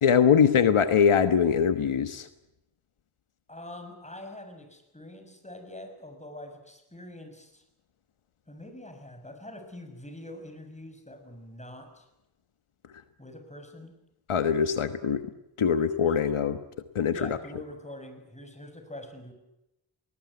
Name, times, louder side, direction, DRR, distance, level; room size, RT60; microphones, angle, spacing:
voice 1, 0.0-2.3 14.3-15.2 15.6-16.6 16.9-17.4, left 7 dB, 75° left, 10 dB, 1.4 m, -22 dB
voice 2, 3.5-7.6 8.5-12.1 13.2-14.0 16.0-16.1 17.1-19.3, left 1 dB, 15° left, 6 dB, 6.2 m, -44 dB
21.0 x 19.5 x 9.6 m, 0.89 s
cardioid pair, 70°, 50 cm